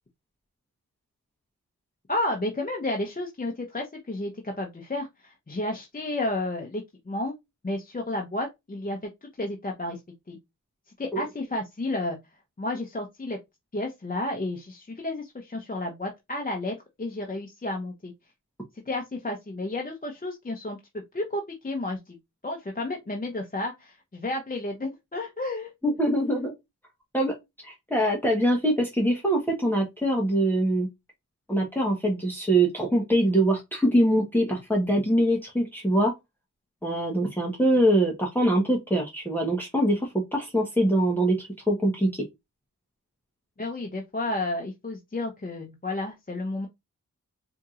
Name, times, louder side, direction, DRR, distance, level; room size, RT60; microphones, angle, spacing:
voice 1, 2.1-7.4 7.6-9.0 9.4-10.0 10.3-10.4 11.0-12.2 12.6-13.4 13.7-18.1 18.9-22.1 22.4-25.7 43.6-46.7, left 2 dB, 25° left, 0.8 m, -32 dB
voice 2, 25.8-26.5 27.1-27.3 27.6-30.9 31.5-36.1 36.8-42.1, right 1 dB, 5° left, 1.1 m, -23 dB
4.5 x 2.8 x 2.4 m
wide cardioid pair, 60°, 32 cm